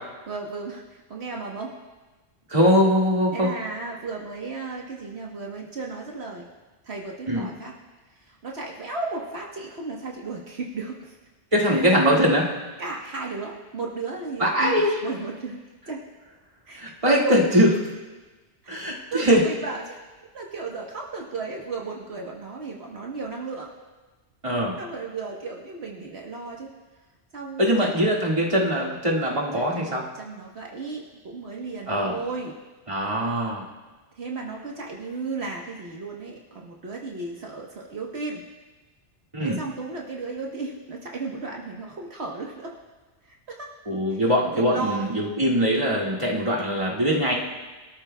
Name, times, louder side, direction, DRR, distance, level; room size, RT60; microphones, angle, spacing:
voice 1, 0.3-1.7 3.3-6.5 6.8-7.7 8.2-11.2 11.7-11.9 12.8-15.6 15.9-16.0 16.7-17.4 18.6-18.8 19.1-20.0 20.3-23.7 24.8-26.8 27.3-27.9 29.5-32.5 34.2-38.4 39.4-42.7 43.2-43.7 44.1-44.2 44.5-45.0, right 3 dB, 70° right, -1 dB, 1.5 m, -34 dB
voice 2, 2.5-3.5 7.3-7.5 11.5-12.5 14.4-14.9 16.8-17.7 18.7-19.4 24.4-24.7 27.6-30.0 31.9-32.2 32.9-33.6 39.3-39.6 43.9-47.3, equal, 30° right, -3 dB, 2.1 m, -22 dB
23.0 x 13.0 x 2.3 m, 1.2 s
omnidirectional pair, 1.1 m